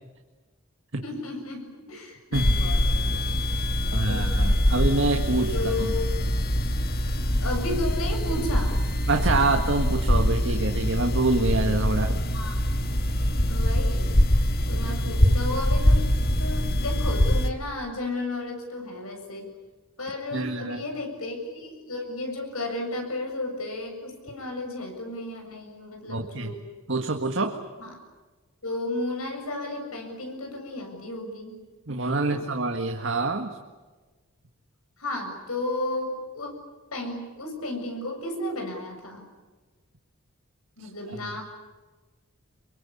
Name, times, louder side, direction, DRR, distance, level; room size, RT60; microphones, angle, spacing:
voice 1, 1.0-3.2 4.1-4.5 5.5-6.1 7.4-8.8 12.2-12.6 13.4-14.1 14.7-16.0 16.4-19.5 20.0-26.6 27.8-28.0 28.6-31.5 32.1-32.4 35.0-36.5 36.9-39.3 40.8-41.4, left 2 dB, 85° left, 4 dB, 7.4 m, -33 dB
sound 1, 2.3-17.5, equal, 45° left, 1.9 m, -24 dB
voice 2, 2.3-2.7 3.9-5.9 9.1-12.2 20.3-20.8 26.1-26.5 26.9-27.6 31.9-33.6 40.8-40.9, right 2 dB, 60° right, 3 dB, 1.8 m, -26 dB
28.0 x 23.5 x 8.6 m, 1.3 s
head